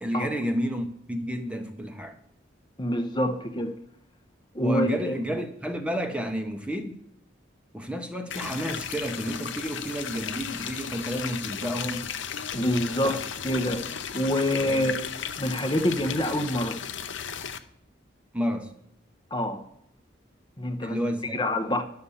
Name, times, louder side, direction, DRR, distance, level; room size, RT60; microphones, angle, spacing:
voice 1, 0.0-2.2 4.6-7.0 7.7-12.1 13.0-13.2 14.7-14.9 18.3-18.7 20.8-21.4, equal, 5° right, 0.8 m, -31 dB
voice 2, 2.8-3.8 4.5-5.2 12.5-15.0 15.4-16.8 19.3-19.6 20.6-21.0 21.3-21.8, left 1 dB, 20° left, 0.8 m, -26 dB
sound 1, 8.3-17.6, left 7 dB, 75° left, 0.8 m, -35 dB
11.0 x 6.9 x 7.0 m
head